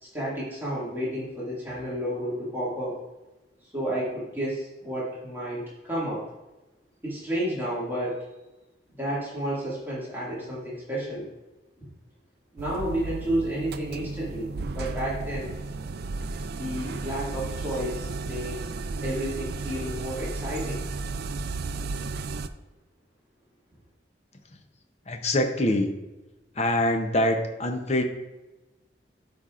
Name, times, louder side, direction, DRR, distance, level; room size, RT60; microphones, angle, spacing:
voice 1, 0.0-3.0 3.7-6.3 7.0-8.2 8.9-11.3 12.5-15.5 16.5-18.6 19.0-20.8, equal, 10° right, -9 dB, 2.1 m, -31 dB
sound 1, 12.6-22.5, right 3 dB, 60° right, 0.4 m, -34 dB
voice 2, 25.1-25.9 26.5-28.0, left 1 dB, 35° left, 5 dB, 0.7 m, -24 dB
12.5 x 5.2 x 2.5 m, 1.0 s
head